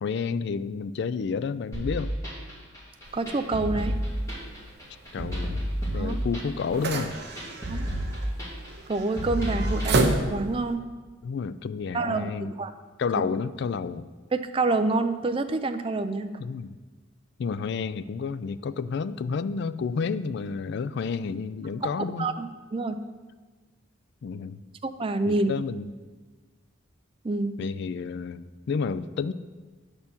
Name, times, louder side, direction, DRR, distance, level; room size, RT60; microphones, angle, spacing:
voice 1, 0.0-2.1 3.7-3.9 5.1-5.6 5.9-7.1 11.2-12.5 13.0-14.1 16.4-16.8 17.4-22.3 24.2-24.6 25.3-25.9 27.6-29.3, left 5 dB, 55° left, 14 dB, 0.3 m, -30 dB
sound 1, 1.7-9.9, equal, 15° left, 2.6 m, -31 dB
sound 2, 3.0-10.8, right 2 dB, 55° right, 0.8 m, -32 dB
voice 2, 3.1-3.9 5.9-6.2 7.7-7.9 8.9-10.8 11.9-12.7 14.3-16.3 21.8-21.9 22.2-23.0 24.8-25.6 27.2-27.5, right 3 dB, 25° right, 8 dB, 0.4 m, -27 dB
9.2 x 4.4 x 7.0 m, 1.3 s
head